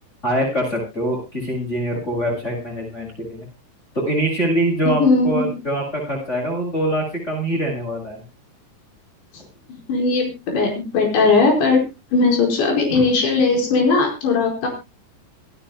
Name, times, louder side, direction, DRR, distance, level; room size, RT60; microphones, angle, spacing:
voice 1, 0.2-3.5 3.9-8.2 12.9-13.0, right 1 dB, 15° left, -1 dB, 7.4 m, -24 dB
voice 2, 4.9-5.6 9.9-11.8 12.1-14.7, left 4 dB, 75° left, 2 dB, 6.9 m, -18 dB
27.0 x 10.0 x 2.2 m, 0.27 s
omnidirectional pair, 5.1 m